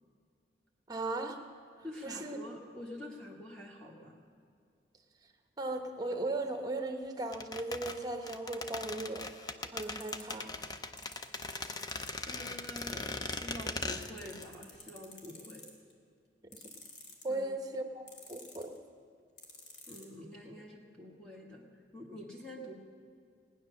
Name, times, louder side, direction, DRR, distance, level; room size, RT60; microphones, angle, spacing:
voice 1, 0.9-1.4 2.0-2.4 5.6-9.3 9.6-10.5 16.5-16.6 17.2-18.0 18.3-18.7, right 2 dB, 20° right, 5 dB, 1.0 m, -37 dB
voice 2, 1.8-4.2 12.3-15.6 17.3-17.5 19.9-22.7, left 1 dB, 5° left, -3 dB, 1.6 m, -47 dB
sound 1, 7.3-14.5 14.7-14.8, left 3 dB, 20° left, 0.5 m, -39 dB
sound 2, 9.8-10.3 11.0-12.1 12.8-12.9 13.3-13.4 13.6-15.9 16.5-17.4 18.1-18.8 19.4-20.0, left 3 dB, 90° left, 2.3 m, -49 dB
18.5 x 9.8 x 6.5 m, 2.3 s
head